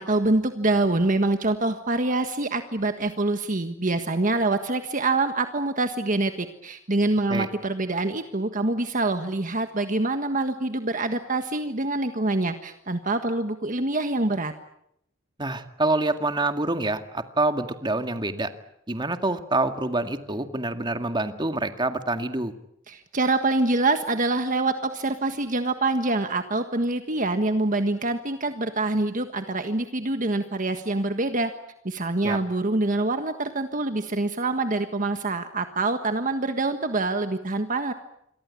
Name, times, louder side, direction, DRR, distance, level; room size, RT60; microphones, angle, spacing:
voice 1, 0.0-14.5 22.9-31.5 31.8-37.9, right 2 dB, 40° right, 8 dB, 1.5 m, -25 dB
voice 2, 15.4-18.5 18.9-22.5 32.2-32.4, right 2 dB, 20° right, 8 dB, 2.0 m, -26 dB
28.0 x 23.5 x 8.6 m, 0.76 s
head